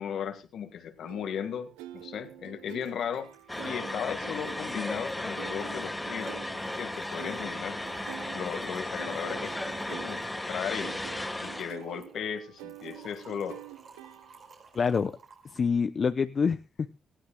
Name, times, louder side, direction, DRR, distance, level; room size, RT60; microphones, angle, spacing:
voice 1, 0.0-3.3 3.6-7.8 8.3-9.6 9.9-11.0 11.4-13.6, left 8 dB, 70° left, 8 dB, 1.8 m, -36 dB
sound 1, 1.0-14.6, right 13 dB, 85° right, 0.7 m, -47 dB
Trickle dribble / Fill (with liquid), 2.0-2.1 2.3-2.4 2.6-15.7, right 4 dB, 55° right, 5.2 m, -53 dB
sound 2, 3.5-11.7, left 1 dB, 10° left, 1.6 m, -35 dB
voice 2, 14.7-15.1 15.5-16.9, left 5 dB, 45° left, 10 dB, 0.7 m, -26 dB
20.0 x 15.5 x 2.3 m, 0.32 s
hypercardioid pair, 55°, 0 cm